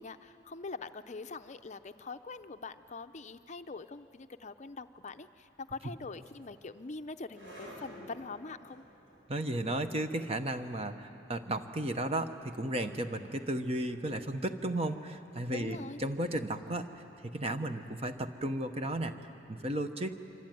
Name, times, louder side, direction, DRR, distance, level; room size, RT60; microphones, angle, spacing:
voice 1, 0.0-8.8 15.5-16.0, left 3 dB, 40° left, 10 dB, 0.6 m, -43 dB
sound 1, 6.1-17.3, equal, 85° right, 7.6 m, -56 dB
voice 2, 9.3-16.9 17.3-20.2, right 1 dB, 35° right, 8 dB, 1.1 m, -34 dB
25.5 x 25.5 x 9.3 m, 2.9 s
head